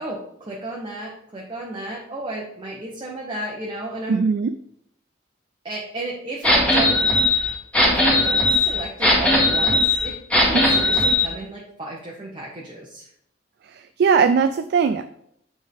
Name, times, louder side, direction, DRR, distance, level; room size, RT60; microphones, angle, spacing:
voice 1, 0.0-4.2 5.6-7.0 7.9-10.2 10.4-13.1, right 1 dB, 30° right, -3 dB, 0.9 m, -33 dB
voice 2, 4.1-4.5 10.7-10.8 13.7-15.1, right 5 dB, 60° right, 10 dB, 0.3 m, -20 dB
sound 1, 6.4-11.3, left 1 dB, 10° left, 1.9 m, -18 dB
8.8 x 3.6 x 3.6 m, 0.71 s
head